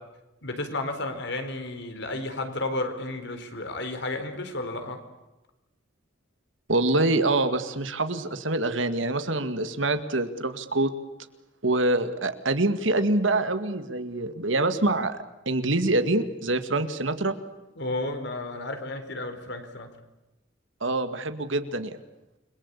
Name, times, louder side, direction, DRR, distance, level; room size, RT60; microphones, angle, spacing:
voice 1, 0.4-5.0 17.8-19.9, left 2 dB, 60° left, 7 dB, 4.2 m, -32 dB
voice 2, 6.7-10.9 11.6-15.2 15.5-17.3 20.8-22.0, right 2 dB, 70° right, 9 dB, 2.3 m, -25 dB
29.5 x 22.5 x 8.5 m, 0.99 s
head